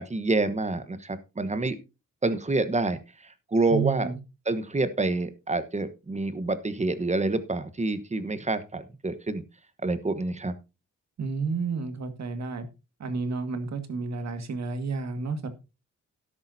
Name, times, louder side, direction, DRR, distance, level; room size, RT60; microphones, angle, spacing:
voice 1, 0.0-1.8 2.2-4.1 4.5-9.4 9.8-10.5, right 2 dB, 20° right, 1.2 m, -27 dB
voice 2, 3.7-4.2 11.2-12.7 13.0-15.5, right 4 dB, 60° right, 1.9 m, -31 dB
13.0 x 10.5 x 2.8 m
cardioid pair, 105°, 31 cm